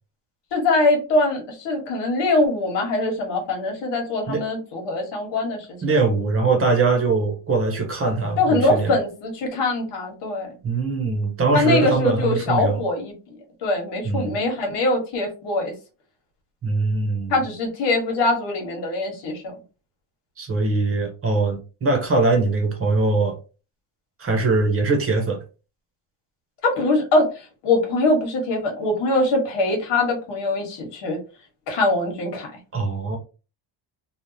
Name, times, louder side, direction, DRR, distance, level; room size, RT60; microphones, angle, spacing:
voice 1, 0.5-5.7 8.4-10.6 11.5-13.1 13.6-15.7 17.3-19.5 26.6-27.3 27.6-31.2 31.7-32.5, left 2 dB, 70° left, 1.4 m, -22 dB
voice 2, 5.8-8.9 10.6-12.8 14.0-14.4 16.6-17.3 20.4-23.4 24.2-25.4 32.7-33.2, right 3 dB, 30° right, 1.0 m, -22 dB
3.4 x 2.4 x 2.7 m
cardioid pair, 155°, 44 cm